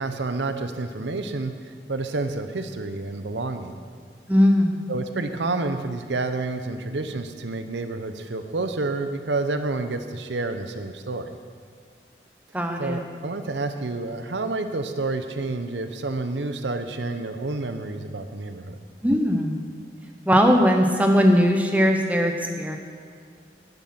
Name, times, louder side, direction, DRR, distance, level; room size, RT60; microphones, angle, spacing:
voice 1, 0.0-3.8 4.9-11.3 12.8-18.8, right 3 dB, 85° right, 8 dB, 0.8 m, -29 dB
voice 2, 4.3-4.9 12.5-13.0 19.0-19.6 20.3-22.8, equal, 10° right, 3 dB, 0.9 m, -19 dB
10.5 x 9.9 x 6.0 m, 2.1 s
head